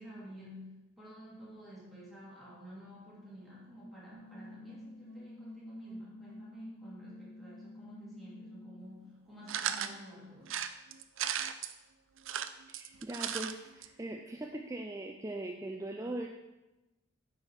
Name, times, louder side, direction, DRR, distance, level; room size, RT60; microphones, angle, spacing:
voice 1, 0.0-10.6, equal, ahead, -9 dB, 2.6 m, -50 dB
sound 1, 4.1-9.1, left 1 dB, 55° right, 1.0 m, -50 dB
sound 2, 9.5-9.9 10.5-11.7 12.2-13.5 13.8-13.9 14.1-14.2, right 9 dB, 80° right, 0.5 m, -35 dB
voice 2, 12.7-16.3, right 1 dB, 15° right, 2 dB, 0.4 m, -40 dB
9.0 x 4.8 x 5.8 m, 1.0 s
head